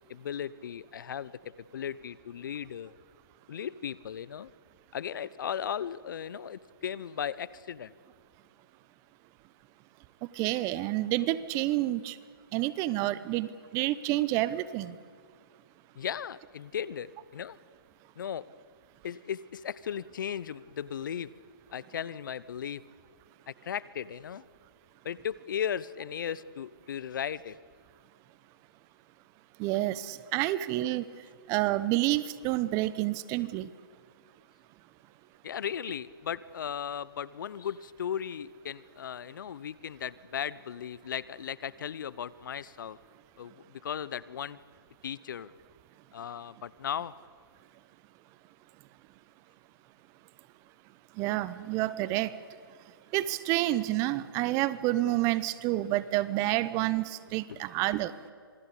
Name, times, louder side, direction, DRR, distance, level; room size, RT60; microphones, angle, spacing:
voice 1, 0.1-1.3 1.7-2.9 3.5-4.5 4.9-7.9 16.0-17.6 18.2-18.5 19.0-21.3 21.7-22.8 23.5-24.4 25.0-27.6 35.4-43.0 43.4-44.6 45.0-45.5 46.1-47.1 57.5-57.6, left 8 dB, 60° left, 20 dB, 0.9 m, -36 dB
voice 2, 10.3-12.2 12.5-15.0 29.6-31.0 31.5-33.7 51.2-52.3 53.1-58.1, right 16 dB, 25° right, 17 dB, 0.8 m, -29 dB
27.0 x 19.5 x 8.4 m, 2.1 s
hypercardioid pair, 135°, 12 cm